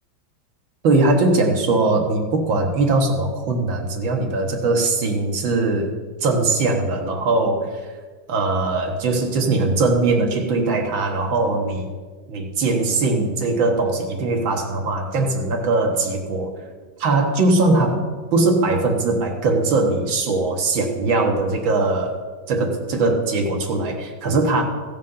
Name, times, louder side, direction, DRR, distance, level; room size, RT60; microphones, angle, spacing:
voice 1, 0.8-5.9 6.2-7.8 8.3-11.9 12.3-16.5 17.0-22.1 22.5-24.6, right 3 dB, 75° right, 2 dB, 2.0 m, -20 dB
15.5 x 5.2 x 5.5 m, 1.4 s
omnidirectional pair, 2.2 m